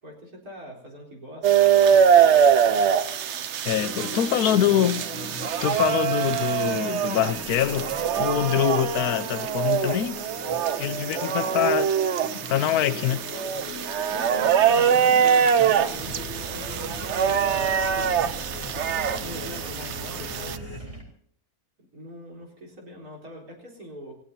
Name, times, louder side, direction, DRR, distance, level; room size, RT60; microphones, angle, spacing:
voice 1, 0.0-2.9 4.0-4.9 6.2-6.4 11.1-11.7 14.1-17.6 18.7-20.9 21.9-24.1, equal, 85° right, 4.6 m, -43 dB
sound 1, 1.4-20.6, right 8 dB, 60° right, 0.9 m, -23 dB
voice 2, 3.6-5.0 5.6-7.9 8.2-10.2 10.8-11.9 12.5-13.2, left 11 dB, 90° left, 1.3 m, -24 dB
sound 2, 3.8-20.8, left 2 dB, 40° left, 2.5 m, -40 dB
sound 3, 15.9-21.0, equal, 20° right, 3.7 m, -40 dB
28.5 x 16.0 x 2.8 m
omnidirectional pair, 1.5 m